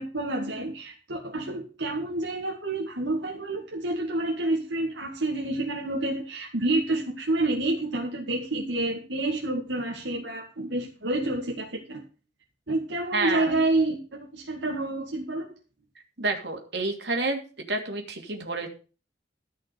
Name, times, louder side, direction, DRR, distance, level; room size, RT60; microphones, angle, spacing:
voice 1, 0.0-12.0 12.7-15.5, right 2 dB, 85° right, -1 dB, 2.2 m, -28 dB
voice 2, 13.1-13.4 16.2-17.4 17.7-18.7, right 3 dB, 70° right, 3 dB, 2.8 m, -28 dB
14.5 x 5.7 x 6.8 m, 0.35 s
head